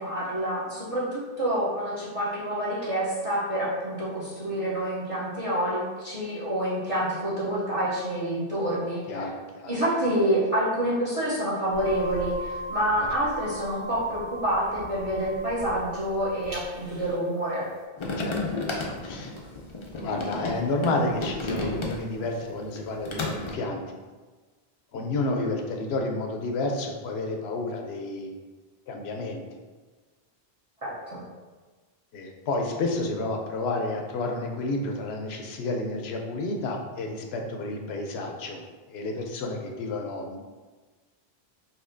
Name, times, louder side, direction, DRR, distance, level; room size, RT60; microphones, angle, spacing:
voice 1, 0.0-9.2 9.7-17.7 30.8-31.2, right 1 dB, 35° right, -8 dB, 0.8 m, -27 dB
voice 2, 9.1-9.7 13.0-13.1 18.2-19.3 20.0-24.0 24.9-28.4 28.9-29.4 32.1-38.6 38.9-40.4, left 2 dB, 80° left, 2 dB, 0.8 m, -30 dB
sound 1, 11.7-17.1, right 1 dB, 60° right, 1.6 m, -39 dB
sound 2, 18.0-22.3 22.6-23.5, left 2 dB, 45° left, 0.4 m, -32 dB
4.2 x 2.6 x 2.6 m, 1.3 s
omnidirectional pair, 1.1 m